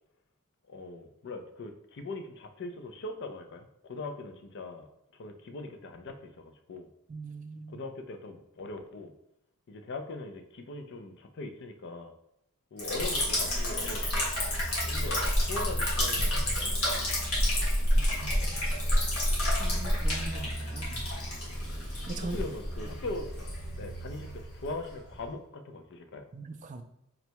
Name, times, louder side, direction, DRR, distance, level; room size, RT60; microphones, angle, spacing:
voice 1, 0.7-4.9 5.1-6.9 7.7-9.1 9.7-12.1 12.7-14.3 14.9-16.8 22.3-23.3 23.8-26.2, left 2 dB, 55° left, 6 dB, 0.5 m, -40 dB
voice 2, 7.1-7.8 17.9-18.4 19.6-21.1 22.1-22.5 26.3-26.8, right 3 dB, 35° right, 7 dB, 0.3 m, -41 dB
Liquid, 12.8-25.2, equal, 75° left, 1.5 m, -29 dB
3.9 x 2.2 x 4.5 m, 0.80 s
head